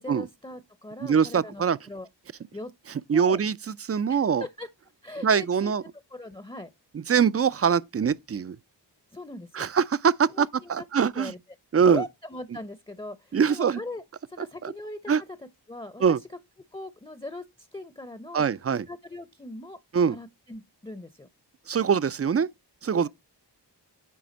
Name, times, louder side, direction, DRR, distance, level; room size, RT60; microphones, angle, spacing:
voice 1, 0.0-2.1 2.5-2.7 3.1-3.4 4.1-4.7 5.0-5.7 6.1-6.7 9.1-9.7 10.3-11.4 11.9-14.0 14.3-15.1 15.4-16.2 16.7-18.4 18.9-19.8 20.1-21.3 22.9-23.1, left 2 dB, 10° left, 0.7 m, -40 dB
voice 2, 1.0-1.8 3.1-4.4 5.2-5.8 6.9-8.6 9.5-11.3 11.7-12.0 13.3-13.8 14.6-14.7 15.1-15.2 16.0-16.2 18.3-18.9 19.9-20.2 21.7-22.5 22.8-23.1, right 7 dB, 35° right, 0.4 m, -23 dB
9.4 x 3.4 x 5.1 m
wide cardioid pair, 50°, 42 cm